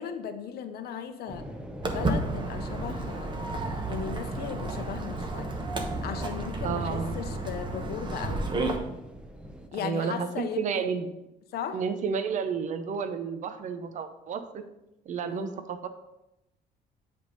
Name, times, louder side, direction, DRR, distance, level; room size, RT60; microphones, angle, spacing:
voice 1, 0.0-1.5 1.8-5.5 6.0-8.4 9.7-10.9 11.5-11.8 15.3-15.6, left 7 dB, 65° left, 9 dB, 0.7 m, -37 dB
sound 1, 1.3-9.7, equal, 5° right, 0.7 m, -43 dB
Walk footsteps, 1.8-8.8, right 2 dB, 30° right, 1.0 m, -32 dB
voice 2, 6.6-7.1 9.8-10.3 10.6-11.1 11.7-14.6 15.1-15.9, right 6 dB, 45° right, 8 dB, 0.7 m, -31 dB
7.8 x 3.6 x 5.2 m, 0.91 s
cardioid pair, 110°, 17 cm